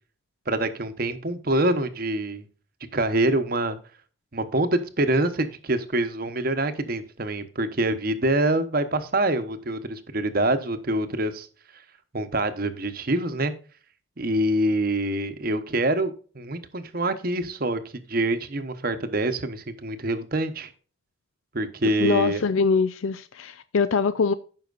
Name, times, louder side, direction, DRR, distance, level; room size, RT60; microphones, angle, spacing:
voice 1, 0.5-2.5 2.9-3.8 4.3-11.5 12.1-13.5 14.2-17.8 18.1-20.7 21.5-22.4, right 1 dB, 45° right, 1.0 m, -25 dB
voice 2, 22.0-24.3, left 5 dB, 80° left, 0.5 m, -23 dB
14.5 x 5.8 x 2.5 m
head